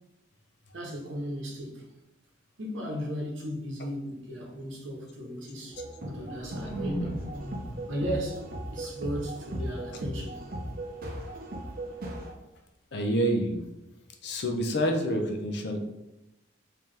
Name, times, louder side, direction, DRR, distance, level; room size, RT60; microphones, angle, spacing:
voice 1, 0.7-1.9 2.6-7.2 7.9-10.4, equal, 70° right, 0.9 m, -36 dB
sound 1, 5.7-9.7, equal, 30° left, 1.4 m, -40 dB
sound 2, 5.7-12.3, right 1 dB, 45° right, 0.5 m, -37 dB
voice 2, 12.9-13.6 14.2-15.8, equal, 55° left, 0.6 m, -28 dB
3.7 x 2.8 x 3.2 m
head